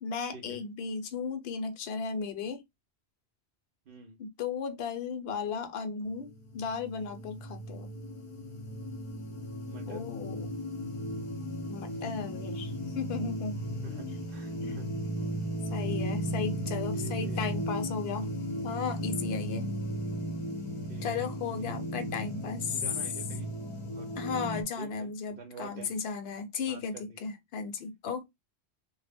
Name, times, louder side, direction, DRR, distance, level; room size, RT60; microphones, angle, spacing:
voice 1, 0.0-2.6 4.2-7.9 9.9-10.5 11.7-13.6 13.9-14.2 14.6-14.9 15.7-18.3 18.6-19.7 21.0-22.8 24.2-28.3, left 5 dB, 70° left, 0.8 m, -35 dB
voice 2, 3.9-4.2 9.6-10.0 11.9-12.1 13.8-14.9 16.9-17.5 20.9-21.0 22.7-23.5 23.9-24.1 24.8-25.9 26.7-27.2, right 4 dB, 60° right, 0.7 m, -47 dB
sound 1, 6.0-24.6, equal, 40° left, 0.5 m, -36 dB
2.1 x 2.0 x 3.3 m
omnidirectional pair, 1.2 m